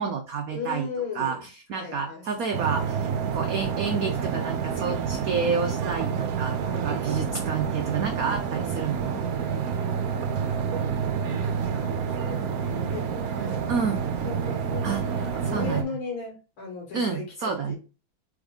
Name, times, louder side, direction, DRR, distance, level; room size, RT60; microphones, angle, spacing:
voice 1, 0.0-0.9 1.2-9.2 13.7-14.0 14.8-15.0 15.5-15.9 16.9-17.7, right 5 dB, 85° right, 4 dB, 0.7 m, -29 dB
voice 2, 0.5-1.5 1.7-2.5 6.6-7.4 9.7-13.7 14.2-17.8, left 5 dB, 85° left, -1 dB, 2.5 m, -38 dB
sound 1, 2.5-15.8, right 7 dB, 65° right, 1.0 m, -28 dB
3.9 x 3.6 x 3.7 m, 0.32 s
omnidirectional pair, 2.2 m